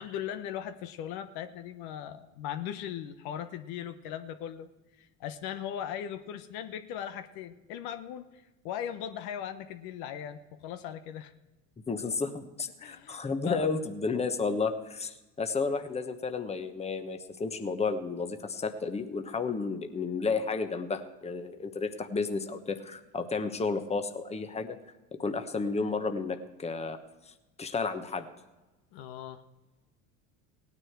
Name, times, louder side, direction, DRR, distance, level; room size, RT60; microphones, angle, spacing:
voice 1, 0.0-4.7 5.0-11.3 12.8-13.2 13.5-13.7 28.9-29.4, left 10 dB, 65° left, 9 dB, 1.1 m, -38 dB
voice 2, 11.9-24.8 25.1-27.0 27.3-28.3, left 4 dB, 15° left, 7 dB, 1.2 m, -32 dB
17.5 x 9.9 x 4.7 m, 1.1 s
hypercardioid pair, 90°, 41 cm